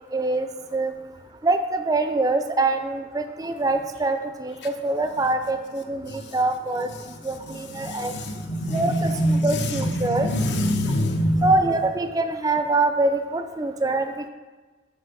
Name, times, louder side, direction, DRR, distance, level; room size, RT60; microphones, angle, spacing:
voice 1, 0.1-0.9 1.4-6.9 7.2-8.1 8.7-10.3 11.4-14.1, right 2 dB, 20° right, 8 dB, 0.3 m, -24 dB
voice 2, 7.5-11.5, equal, 75° left, 5 dB, 0.9 m, -25 dB
7.3 x 5.1 x 5.0 m, 1.3 s
head